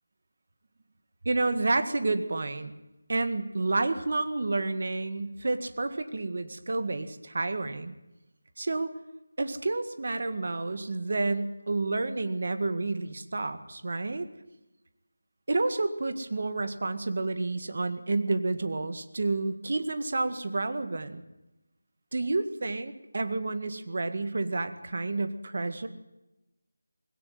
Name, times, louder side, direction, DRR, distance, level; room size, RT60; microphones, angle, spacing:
voice 1, 1.2-2.7 3.1-8.0 8.6-8.9 9.4-14.3 15.5-21.2 22.1-25.9, right 2 dB, 40° right, 10 dB, 1.8 m, -30 dB
20.5 x 17.0 x 9.3 m, 0.96 s
figure-of-eight pair, 180°, 0 cm